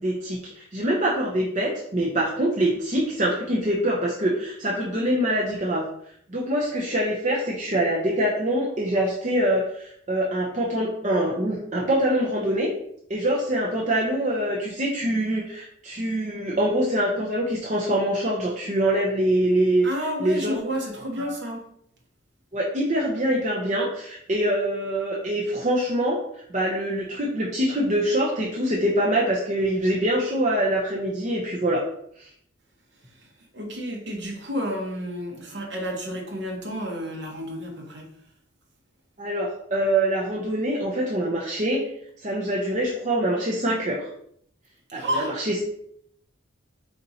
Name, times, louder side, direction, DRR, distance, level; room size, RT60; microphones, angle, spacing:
voice 1, 0.0-5.9 6.3-12.7 13.1-20.6 22.5-31.8 32.2-32.3 39.2-41.8 42.2-44.1 44.9-45.6, right 1 dB, 35° right, -3 dB, 0.6 m, -24 dB
voice 2, 19.8-21.6 33.0-38.1 44.9-45.4, equal, 60° right, 0 dB, 1.2 m, -31 dB
4.2 x 4.1 x 2.8 m, 0.70 s
head